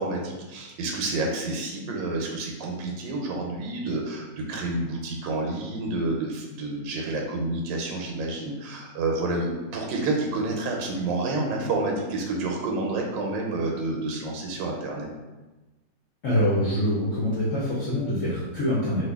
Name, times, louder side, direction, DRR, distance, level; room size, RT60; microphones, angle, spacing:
voice 1, 0.0-15.1, right 2 dB, 85° right, 0 dB, 1.3 m, -29 dB
voice 2, 16.2-19.1, left 1 dB, 60° left, -8 dB, 0.9 m, -25 dB
2.8 x 2.6 x 3.4 m, 1.1 s
omnidirectional pair, 1.9 m